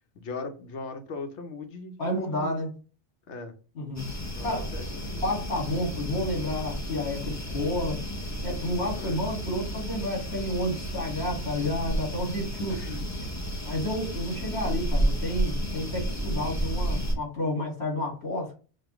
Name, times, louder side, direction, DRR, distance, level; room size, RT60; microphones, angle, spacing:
voice 1, 0.1-2.5 3.3-3.6 4.3-4.9 5.1-5.2 8.9-9.2 12.7-13.0 13.5-13.6 14.3-14.7, left 3 dB, 90° left, 1.1 m, -39 dB
voice 2, 2.0-2.7 3.7-4.1 4.4-4.7 5.2-8.0 8.4-13.0 13.7-18.5, left 1 dB, 70° left, 2.3 m, -30 dB
sound 1, 4.0-17.2, equal, 25° left, 0.4 m, -32 dB
5.3 x 2.3 x 3.0 m
omnidirectional pair, 1.1 m